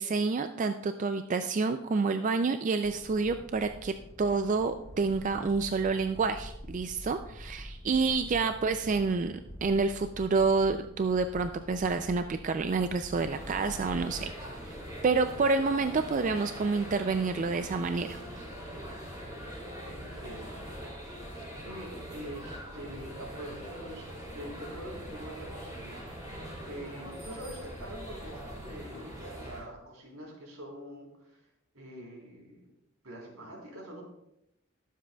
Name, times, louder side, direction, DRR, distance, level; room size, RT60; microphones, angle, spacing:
voice 1, 0.0-9.3 9.6-14.3 14.7-14.8 15.0-18.2, right 4 dB, 35° right, 9 dB, 0.3 m, -28 dB
sound 1, 2.8-14.3, equal, 15° left, 0.6 m, -47 dB
sound 2, 13.1-29.6, equal, 15° right, 4.1 m, -42 dB
voice 2, 19.8-20.6 21.6-31.4 31.7-32.6 33.0-34.0, equal, 80° right, -2 dB, 3.6 m, -45 dB
21.0 x 7.5 x 2.3 m, 0.84 s
head